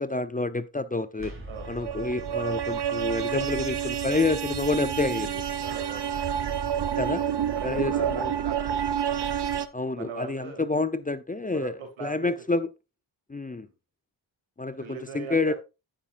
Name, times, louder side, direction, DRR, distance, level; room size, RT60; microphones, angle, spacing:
voice 1, 0.0-1.3 1.7-5.4 7.0-7.2 7.6-8.3 9.7-11.7 12.0-12.7 13.3-13.7 14.6-15.5, left 3 dB, 20° left, 0.6 m, -28 dB
sound 1, 1.1-6.9, right 1 dB, 25° right, 4.3 m, -47 dB
voice 2, 1.4-1.7 5.6-6.3 7.0-8.7 9.9-10.6 11.5-12.3 13.6-13.7 14.8-15.6, right 4 dB, 80° right, 2.9 m, -39 dB
sound 2, 1.5-9.7, right 9 dB, 55° right, 1.0 m, -29 dB
9.9 x 9.7 x 2.5 m
cardioid pair, 80°, 47 cm